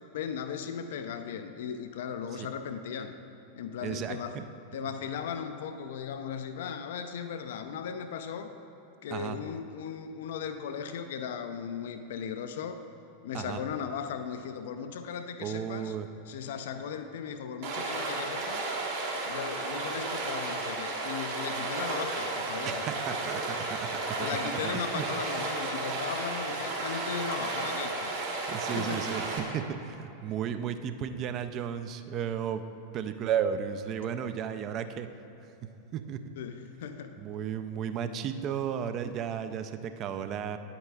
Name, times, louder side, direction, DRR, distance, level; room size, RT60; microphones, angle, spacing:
voice 1, 0.1-3.2 3.5-4.4 4.7-8.5 9.0-12.8 13.2-15.9 16.3-18.7 19.2-22.8 24.2-28.1 28.7-29.1 36.4-37.2, left 7 dB, 55° left, 8 dB, 0.3 m, -37 dB
voice 2, 3.8-4.4 9.1-9.4 13.3-13.6 15.4-16.1 22.6-25.1 28.5-32.6 32.9-35.1 35.9-36.2 37.2-40.6, right 8 dB, 35° right, 10 dB, 0.4 m, -34 dB
Stream, 17.6-29.4, right 3 dB, 55° right, 1.3 m, -33 dB
9.5 x 8.3 x 2.3 m, 3.0 s
figure-of-eight pair, 90°, 0 cm